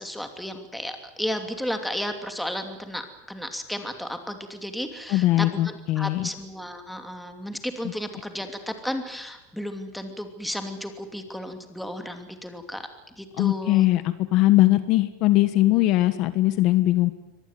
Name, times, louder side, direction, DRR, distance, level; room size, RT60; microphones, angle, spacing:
voice 1, 0.0-13.9, equal, ahead, 6 dB, 2.8 m, -33 dB
voice 2, 5.1-6.3 13.4-17.1, left 16 dB, 45° left, 12 dB, 1.3 m, -20 dB
24.5 x 19.0 x 9.4 m, 0.94 s
supercardioid pair, 140°, 0 cm